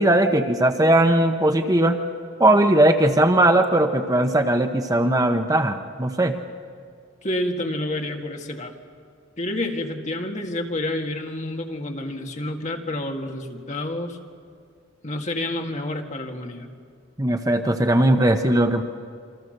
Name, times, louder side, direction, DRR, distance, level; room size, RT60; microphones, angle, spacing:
voice 1, 0.0-2.0 2.4-6.3 17.2-18.8, right 1 dB, 20° right, 6 dB, 0.9 m, -19 dB
voice 2, 7.2-8.7 9.4-14.2 15.0-16.7, left 1 dB, 40° left, 3 dB, 2.1 m, -29 dB
28.5 x 25.0 x 6.7 m, 2.1 s
head